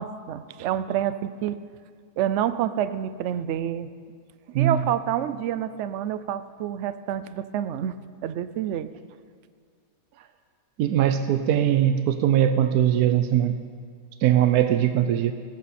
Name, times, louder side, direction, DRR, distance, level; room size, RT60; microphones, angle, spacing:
voice 1, 0.0-1.6 2.2-3.9 4.6-7.9 8.2-8.9, right 10 dB, 65° right, 13 dB, 0.8 m, -28 dB
voice 2, 10.8-13.5 14.2-15.3, right 10 dB, 80° right, 9 dB, 1.2 m, -21 dB
17.5 x 14.5 x 4.2 m, 2.1 s
omnidirectional pair, 1.6 m